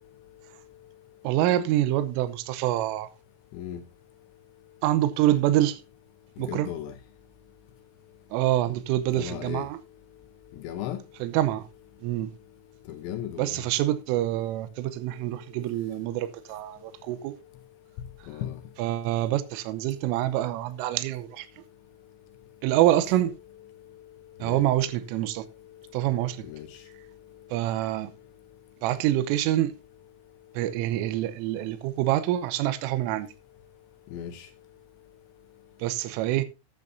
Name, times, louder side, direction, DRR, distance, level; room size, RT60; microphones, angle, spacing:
voice 1, 1.2-3.1 4.8-5.8 6.4-6.7 8.3-9.8 11.2-11.6 12.0-12.3 13.4-17.4 18.8-21.5 22.6-23.3 24.4-25.4 25.9-26.5 27.5-28.1 28.8-29.7 30.6-33.3 35.8-36.5, right 13 dB, 85° right, 3.4 m, -26 dB
voice 2, 6.5-6.9 9.2-9.7 10.6-11.0 12.9-13.6 18.3-18.5 24.4-24.6 26.5-26.7 34.1-34.4, left 10 dB, 75° left, 2.8 m, -35 dB
13.0 x 11.0 x 2.6 m
omnidirectional pair, 5.8 m